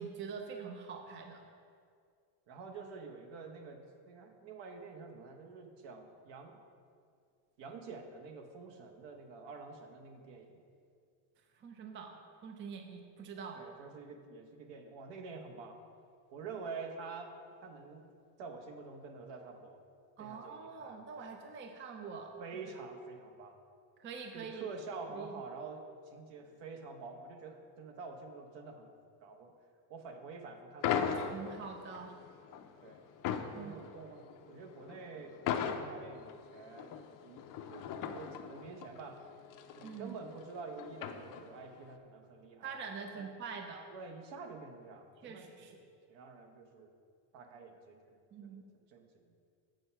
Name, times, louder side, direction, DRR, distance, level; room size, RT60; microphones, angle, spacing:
voice 1, 0.0-1.4 11.6-12.2 12.4-13.6 20.2-22.7 24.0-24.7 25.1-25.4 31.2-32.1 33.5-33.8 39.8-40.1 42.6-43.8 45.2-45.8 48.3-48.6, right 5 dB, 25° right, 4 dB, 0.5 m, -45 dB
voice 2, 2.5-6.6 7.6-10.6 13.5-15.8 16.3-17.3 17.6-18.0 18.4-19.8 20.2-21.4 22.4-23.6 24.3-28.9 29.2-29.5 29.9-31.3 32.8-33.0 33.5-35.4 35.7-36.9 37.2-39.2 39.8-42.8 43.1-43.3 43.9-45.8 46.1-46.9 47.3-48.2 48.4-48.6 48.9-49.3, right 4 dB, 60° right, 5 dB, 1.1 m, -48 dB
sound 1, 30.8-41.8, left 7 dB, 45° left, 0.5 m, -39 dB
8.0 x 4.4 x 5.7 m, 2.2 s
cardioid pair, 130°, 49 cm